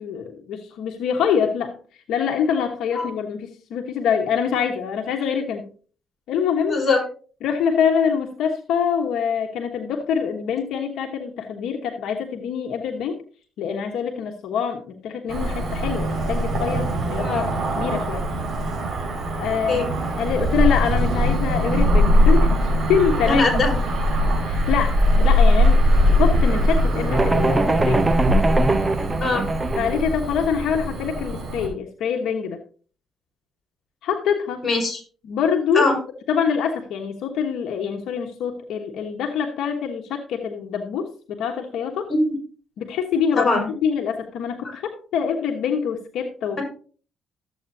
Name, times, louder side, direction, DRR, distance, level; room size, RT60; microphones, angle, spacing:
voice 1, 0.0-1.8 2.1-5.7 6.3-6.8 7.4-13.2 13.6-17.5 17.8-18.2 19.4-19.9 20.2-22.5 22.9-23.4 24.5-25.8 26.2-28.1 29.8-32.6 34.0-34.6 35.3-35.9 36.3-42.1 42.8-43.5 43.8-46.6, left 7 dB, 80° left, 3 dB, 1.1 m, -25 dB
voice 2, 6.7-7.0 17.1-17.4 19.7-19.9 23.3-23.8 29.2-29.4 34.6-35.0 35.7-36.0 42.1-42.3 43.3-43.7 44.6-44.8, left 3 dB, 30° left, 0 dB, 5.1 m, -21 dB
Cricket / Motor vehicle (road), 15.3-31.7, equal, 50° right, 5.0 m, -21 dB
sound 1, 27.1-30.0, right 2 dB, 20° right, 0.7 m, -21 dB
13.0 x 8.0 x 2.7 m, 0.40 s
cardioid pair, 90°, 0 cm